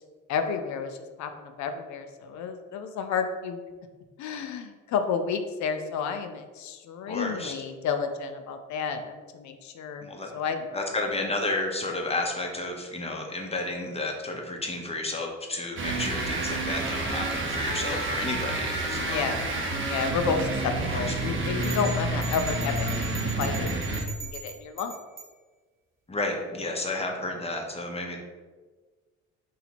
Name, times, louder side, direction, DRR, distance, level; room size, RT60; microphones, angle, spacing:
voice 1, 0.3-3.6 4.2-10.1 10.3-10.7 19.0-19.4 19.9-22.9 23.4-23.7 24.1-25.0, left 6 dB, 70° left, 7 dB, 0.5 m, -31 dB
voice 2, 7.1-7.5 10.0-10.3 10.7-19.4 20.9-21.0 26.1-28.2, left 2 dB, 20° left, 1 dB, 0.7 m, -32 dB
sound 1, 15.8-24.3, right 2 dB, 40° right, 0.7 m, -29 dB
sound 2, 21.6-25.3, right 4 dB, 10° right, 1.2 m, -40 dB
2.9 x 2.8 x 4.1 m, 1.4 s
cardioid pair, 90°, 30 cm